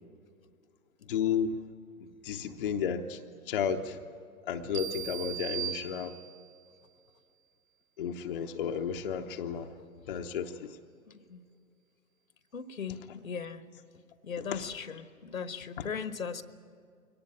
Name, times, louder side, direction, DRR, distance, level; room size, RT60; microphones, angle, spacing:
voice 1, 1.0-1.6 2.0-3.2 3.5-4.0 4.5-6.1 8.0-10.8 14.5-14.7 15.8-15.9, left 7 dB, 35° left, 5 dB, 0.8 m, -33 dB
sound 1, 4.7-6.6, right 12 dB, 20° right, 0.6 m, -38 dB
voice 2, 11.1-11.4 12.5-13.6 14.2-16.4, left 6 dB, 65° left, 12 dB, 1.3 m, -38 dB
23.5 x 18.5 x 8.9 m, 2.2 s
figure-of-eight pair, 125°, 44 cm